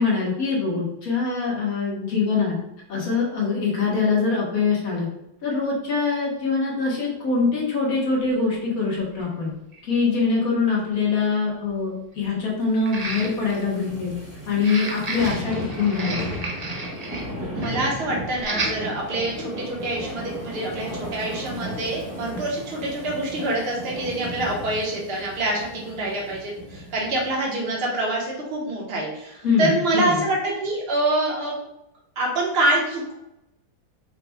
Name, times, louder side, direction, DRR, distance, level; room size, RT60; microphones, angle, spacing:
voice 1, 0.0-2.6 2.9-5.1 5.4-9.5 9.8-14.1 14.5-16.3 29.4-30.2, left 4 dB, 55° left, -4 dB, 1.8 m, -23 dB
sound 1, 8.1-8.2 9.2-9.3 9.7-9.8 12.8-13.6 14.5-17.3 17.6-17.8 18.4-18.8 19.3-19.4, right 2 dB, 75° right, 0.3 m, -32 dB
sound 2, 12.8-27.3 27.7-27.8, equal, 10° right, 1.1 m, -35 dB
voice 2, 17.5-31.5 32.2-33.1, right 1 dB, 40° right, -3 dB, 1.3 m, -26 dB
5.8 x 2.5 x 3.4 m, 0.86 s
omnidirectional pair, 1.8 m